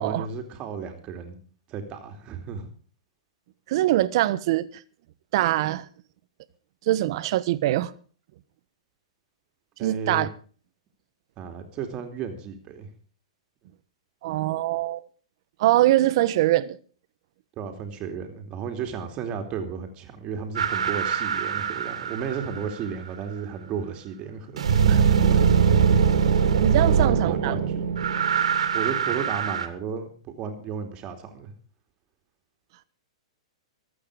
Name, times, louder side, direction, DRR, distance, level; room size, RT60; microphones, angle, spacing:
voice 1, 0.0-1.4 1.7-2.7 9.8-10.3 11.4-12.9 17.6-24.6 25.1-25.5 26.8-27.9 28.7-30.1 30.4-31.5, right 6 dB, 30° right, 2.9 m, -33 dB
voice 2, 3.7-4.7 5.3-5.8 6.9-7.9 9.8-10.3 14.2-15.0 15.6-16.8 24.9-25.0 26.6-27.5, right 15 dB, 55° right, 1.2 m, -23 dB
sound 1, 20.6-22.8 24.6-29.7, right 7 dB, 85° right, 2.9 m, -22 dB
24.5 x 8.7 x 5.0 m
hypercardioid pair, 140°, 3 cm